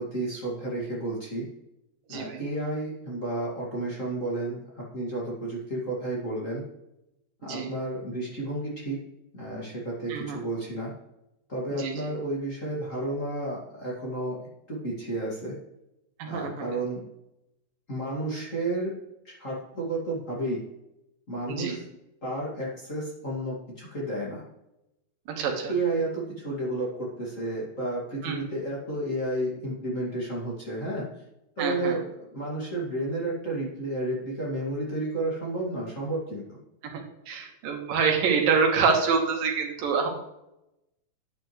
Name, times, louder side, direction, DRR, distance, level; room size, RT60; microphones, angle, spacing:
voice 1, 0.0-1.5 2.1-6.6 7.4-9.0 9.3-10.9 11.5-14.4 14.7-15.6 16.2-17.0 17.9-18.9 19.2-20.6 21.3-21.8 22.2-24.4 25.7-31.1 31.6-32.0 32.3-36.6, right 2 dB, 25° left, -5 dB, 2.1 m, -31 dB
voice 2, 2.1-2.4 7.4-7.7 10.1-10.4 11.7-11.9 16.2-16.7 21.5-21.8 25.3-25.7 28.2-28.4 31.6-32.0 36.8-37.0 37.3-40.1, right 5 dB, 90° right, 2 dB, 3.2 m, -26 dB
10.5 x 8.9 x 3.2 m, 0.89 s
omnidirectional pair, 3.9 m